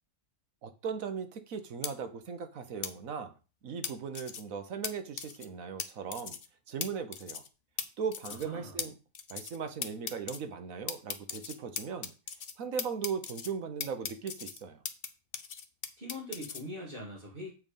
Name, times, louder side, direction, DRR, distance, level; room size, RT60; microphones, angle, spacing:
voice 1, 0.6-3.3 3.6-6.4 6.7-7.4 8.0-8.9 9.3-12.1 12.6-14.8, right 6 dB, 90° right, 9 dB, 1.4 m, -38 dB
sound 1, 1.8-1.9 2.8-2.9 3.8-4.4 4.8-4.9 5.2-5.5 5.8-5.9 6.1-6.5 6.8-6.9 7.1-7.5 7.8-7.9 8.1-8.5 8.8-8.9 9.1-9.6 9.8-10.4 10.9-12.5 12.8-13.5 13.8-15.1 15.3-16.6, left 7 dB, 50° left, 0.9 m, -37 dB
voice 2, 8.2-8.8 16.0-17.5, left 1 dB, 40° right, -3 dB, 2.5 m, -42 dB
8.0 x 4.8 x 5.4 m, 0.33 s
omnidirectional pair, 1.4 m